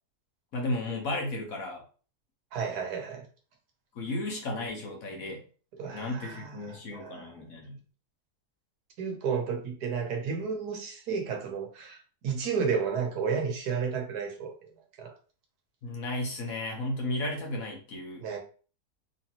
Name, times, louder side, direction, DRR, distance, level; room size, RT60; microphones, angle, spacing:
voice 1, 0.5-1.8 3.9-5.4 5.9-7.8 15.8-18.3, left 2 dB, 65° left, 1.4 m, -34 dB
voice 2, 2.5-3.3 5.8-7.7 9.0-14.5 15.0-15.1 18.2-18.4, right 6 dB, 80° right, 1.5 m, -32 dB
3.9 x 2.9 x 2.9 m
omnidirectional pair, 1.6 m